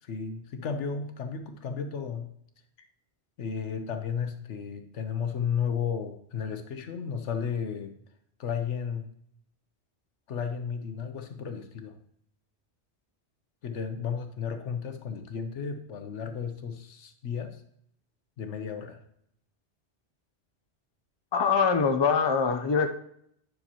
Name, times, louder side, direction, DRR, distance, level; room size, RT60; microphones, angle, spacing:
voice 1, 0.0-2.3 3.4-7.9 8.4-9.1 10.3-12.0 13.6-17.6 18.4-19.0, left 6 dB, 90° left, 8 dB, 1.2 m, -33 dB
voice 2, 21.3-22.9, left 5 dB, 30° left, 6 dB, 0.5 m, -23 dB
9.9 x 6.5 x 2.9 m, 0.70 s
omnidirectional pair, 1.2 m